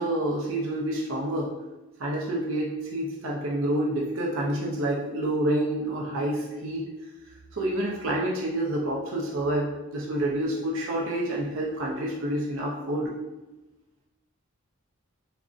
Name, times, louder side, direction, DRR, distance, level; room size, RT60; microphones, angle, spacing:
voice 1, 0.0-1.5 2.0-6.9 7.5-13.1, right 1 dB, 60° right, -2 dB, 0.4 m, -28 dB
3.6 x 2.0 x 2.4 m, 1.1 s
head